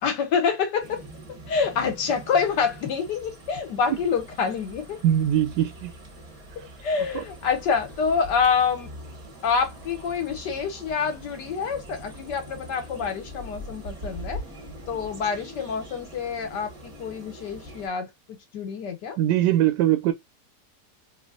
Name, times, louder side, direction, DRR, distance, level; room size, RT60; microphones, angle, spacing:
voice 1, 0.0-5.0 6.6-8.9 9.4-14.4 14.9-19.2, left 6 dB, 80° left, 1.5 m, -27 dB
sound 1, 0.8-17.9, equal, 25° right, 1.0 m, -42 dB
voice 2, 5.0-5.9 7.1-7.2 19.2-20.1, right 12 dB, 85° right, 1.2 m, -21 dB
3.3 x 2.9 x 2.3 m
omnidirectional pair, 1.8 m